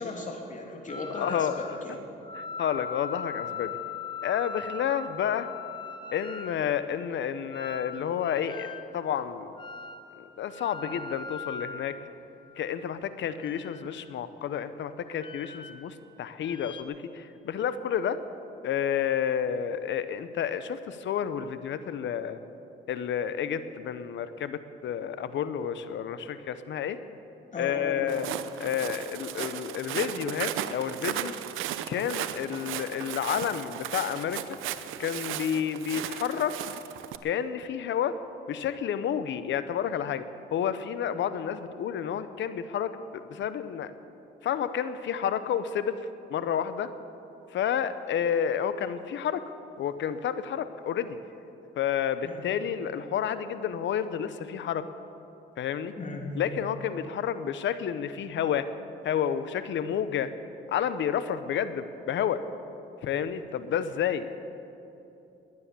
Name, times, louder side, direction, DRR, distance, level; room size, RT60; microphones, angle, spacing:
voice 1, 0.0-2.1 27.5-28.3 52.2-52.5 56.0-56.4, left 2 dB, 40° left, 2 dB, 2.9 m, -37 dB
sound 1, 0.9-1.8 2.2-6.6 7.5-8.9 9.6-10.1 10.5-12.7 13.3-14.1 15.1-16.1 16.4-16.8, left 5 dB, 25° left, 1.1 m, -40 dB
voice 2, 1.1-1.6 2.4-3.7 4.2-5.5 6.1-9.5 10.2-12.0 12.6-18.2 18.6-22.4 22.9-27.0 27.6-28.3 28.6-31.4 31.9-34.4 35.0-36.5 37.2-38.2 38.5-40.2 40.5-43.9 44.4-46.0 46.3-46.9 47.5-49.4 49.8-51.2 51.8-54.8 55.6-55.9 56.4-58.7 59.0-60.3 60.7-62.4 63.0-64.3, left 8 dB, 70° left, 12 dB, 0.9 m, -30 dB
Walk footsteps, 28.1-37.2, right 12 dB, 90° right, 0.7 m, -36 dB
20.0 x 9.9 x 7.0 m, 2.8 s
cardioid pair, 90°, 20 cm